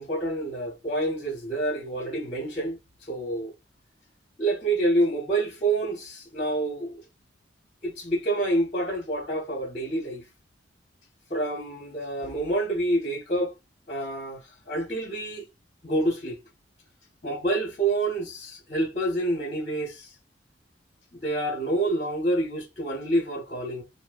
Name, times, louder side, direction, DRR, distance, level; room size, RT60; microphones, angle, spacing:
voice 1, 0.0-3.5 4.4-7.0 7.8-10.2 11.3-13.5 13.9-15.4 15.8-16.4 17.2-20.1 21.1-23.8, right 1 dB, 35° left, 0.8 m, -28 dB
2.6 x 2.1 x 2.2 m
head